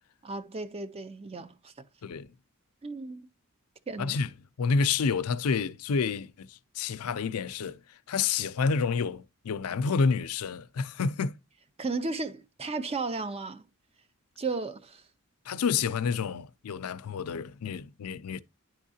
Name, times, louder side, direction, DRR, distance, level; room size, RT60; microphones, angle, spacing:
voice 1, 0.2-1.7 2.8-3.3 3.9-4.2 11.8-13.7 14.4-15.0, right 3 dB, 25° right, 0.5 m, -34 dB
voice 2, 4.0-4.3 4.6-7.8 8.1-11.4 15.5-18.4, left 5 dB, 80° left, 0.5 m, -29 dB
10.5 x 3.6 x 2.7 m
head